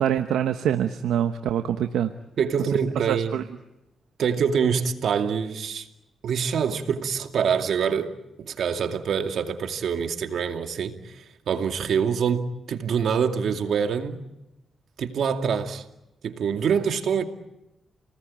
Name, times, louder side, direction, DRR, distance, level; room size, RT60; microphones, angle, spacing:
voice 1, 0.0-2.1 3.1-3.4, right 10 dB, 90° right, 1.0 m, -24 dB
voice 2, 2.4-3.3 4.2-5.9 6.2-14.2 15.0-15.8 16.2-17.2, right 7 dB, 75° right, 2.4 m, -25 dB
29.5 x 19.5 x 8.8 m
cardioid pair, 70°, 0 cm